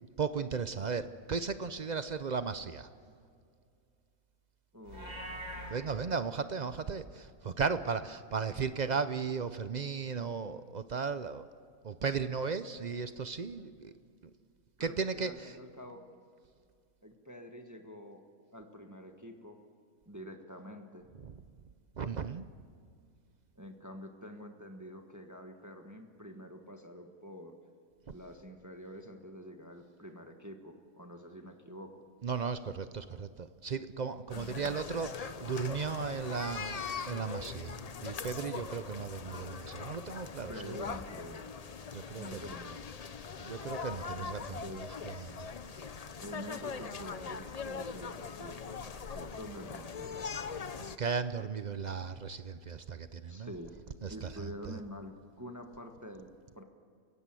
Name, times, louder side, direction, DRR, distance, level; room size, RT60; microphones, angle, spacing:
voice 1, 0.2-2.9 5.7-11.5 11.8-13.9 14.8-15.6 21.2-21.4 22.0-22.4 32.2-40.8 41.9-42.4 43.4-45.5 45.8-45.9 51.0-53.5 54.0-54.8, right 5 dB, 60° right, 11 dB, 0.4 m, -36 dB
voice 2, 4.7-5.2 14.8-16.0 17.0-18.2 18.5-19.6 20.0-21.1 23.5-27.6 28.1-32.0 40.5-41.5 42.1-42.8 44.2-45.1 46.2-48.6 49.1-50.2 53.3-53.8 54.1-56.3 56.5-56.6, equal, 10° right, 4 dB, 1.4 m, -47 dB
Livestock farm animals working animals, 4.8-5.7, equal, 85° right, 4.6 m, -42 dB
sound 1, 34.3-51.0, left 5 dB, 55° left, 0.4 m, -41 dB
29.0 x 16.5 x 7.6 m, 2.3 s
omnidirectional pair, 1.7 m